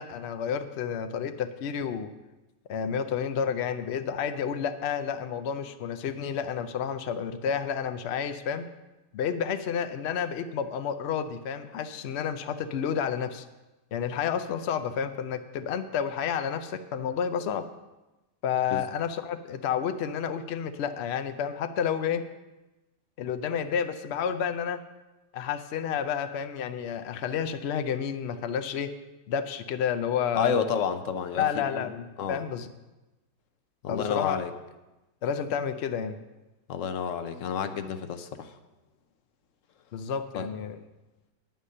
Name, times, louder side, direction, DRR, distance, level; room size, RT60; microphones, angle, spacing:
voice 1, 0.0-2.1 2.7-8.7 9.1-13.5 13.9-17.7 18.4-22.2 23.2-24.8 25.3-28.9 29.3-30.6 31.4-32.7 33.9-34.4 35.2-36.2 39.9-40.8, left 7 dB, 85° left, 9 dB, 0.5 m, -30 dB
voice 2, 30.3-31.9 32.2-32.4 33.8-34.5 36.7-38.6 40.3-40.5, left 7 dB, 60° left, 10 dB, 0.9 m, -30 dB
9.9 x 9.2 x 5.3 m, 1.1 s
omnidirectional pair, 1.9 m